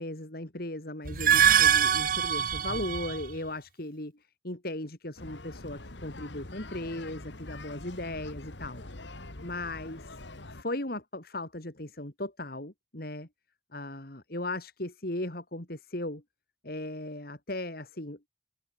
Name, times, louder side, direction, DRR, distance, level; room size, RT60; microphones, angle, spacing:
voice 1, 0.0-8.9 9.4-10.2 10.5-13.3 13.7-16.2 16.6-18.2, left 1 dB, 50° left, 2.9 m, -37 dB
sound 1, 1.1-3.3, right 8 dB, 45° right, 0.8 m, -23 dB
sound 2, 5.2-10.6, left 2 dB, 70° left, 2.2 m, -44 dB
head